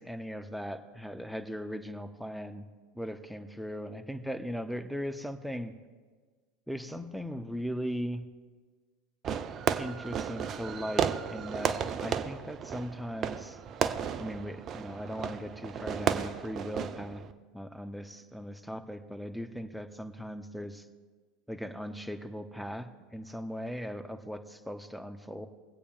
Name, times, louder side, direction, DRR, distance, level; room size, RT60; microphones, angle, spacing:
voice 1, 0.0-2.7 2.9-5.7 6.7-8.2 9.8-13.6 14.2-17.2 17.5-20.9 21.5-25.5, equal, ahead, 7 dB, 0.8 m, -38 dB
Fireworks, 9.2-17.3, right 8 dB, 40° right, 0.6 m, -33 dB
24.0 x 8.4 x 2.5 m, 1.4 s
figure-of-eight pair, 80°, 0 cm